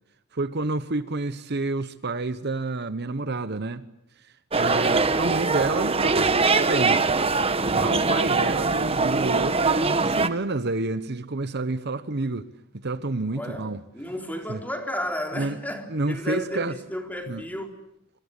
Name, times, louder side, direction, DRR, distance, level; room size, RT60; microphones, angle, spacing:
voice 1, 0.3-3.8 4.2-7.0 7.6-12.5 12.7-13.8 14.5-14.6 15.3-15.6 15.9-16.7 17.3-17.4, right 2 dB, 55° right, 1.0 m, -29 dB
sound 1, 4.5-10.3, right 3 dB, 30° right, 1.3 m, -22 dB
voice 2, 13.3-17.7, equal, 10° left, 3.9 m, -33 dB
26.0 x 25.0 x 8.3 m
head